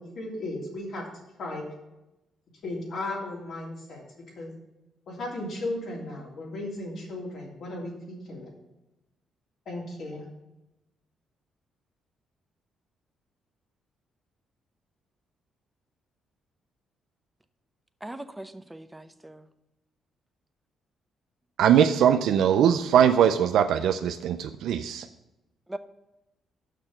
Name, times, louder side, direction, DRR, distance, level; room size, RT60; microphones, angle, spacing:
voice 1, 0.0-1.6 2.6-4.0 4.4-4.5 5.1-8.5 9.6-10.2, left 2 dB, 60° left, 2.9 m, -35 dB
voice 2, 18.0-19.4 25.7-25.8, right 1 dB, 10° right, 0.6 m, -40 dB
voice 3, 21.6-25.1, right 9 dB, 80° right, 0.4 m, -21 dB
6.5 x 5.9 x 6.6 m
cardioid pair, 90°, 0 cm